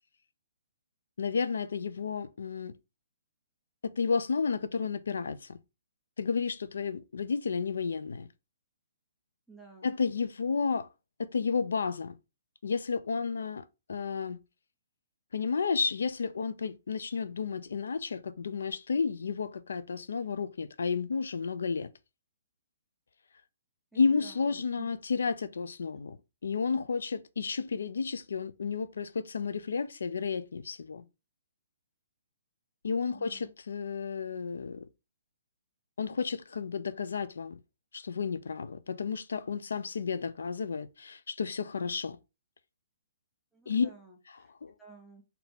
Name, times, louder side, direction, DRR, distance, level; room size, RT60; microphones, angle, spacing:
voice 1, 1.2-2.7 3.8-5.6 6.2-8.3 9.8-10.9 11.2-12.1 12.6-13.6 13.9-14.4 15.3-21.9 24.0-26.2 26.4-31.0 32.8-34.9 36.0-37.6 37.9-42.2 43.7-43.9 44.6-44.7, left 5 dB, 85° left, 0.5 m, -32 dB
voice 2, 9.5-9.9 23.9-24.9 33.0-33.5 43.5-44.5 44.8-45.2, right 3 dB, ahead, 0.6 m, -53 dB
4.1 x 2.8 x 3.5 m
hypercardioid pair, 170°, 0 cm